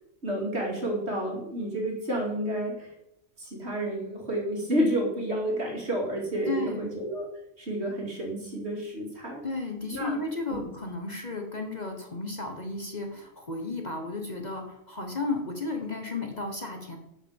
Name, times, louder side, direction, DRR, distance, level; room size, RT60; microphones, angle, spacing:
voice 1, 0.2-2.9 3.4-7.3 7.6-9.4 9.9-10.2 10.5-10.6, right 1 dB, 50° right, -1 dB, 2.9 m, -30 dB
voice 2, 6.5-6.9 9.4-17.0, left 3 dB, 35° left, 3 dB, 1.3 m, -33 dB
8.4 x 6.6 x 7.2 m, 0.83 s
omnidirectional pair, 1.4 m